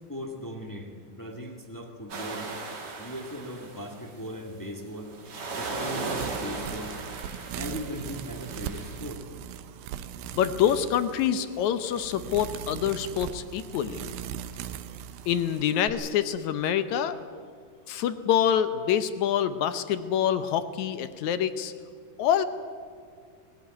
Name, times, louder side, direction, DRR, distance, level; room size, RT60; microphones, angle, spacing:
voice 1, 0.1-2.5 3.0-5.1 5.5-6.9 7.5-9.3, equal, 10° left, 2 dB, 1.0 m, -38 dB
sound 1, 2.1-4.3 4.9-9.0, right 3 dB, 65° right, 4.3 m, -37 dB
sound 2, 6.0-15.9, right 10 dB, 85° right, 2.6 m, -39 dB
voice 2, 10.3-14.1 15.3-17.2 17.9-21.7 22.2-22.4, left 9 dB, 70° left, 11 dB, 1.9 m, -26 dB
19.5 x 16.5 x 9.6 m, 2.2 s
omnidirectional pair, 4.1 m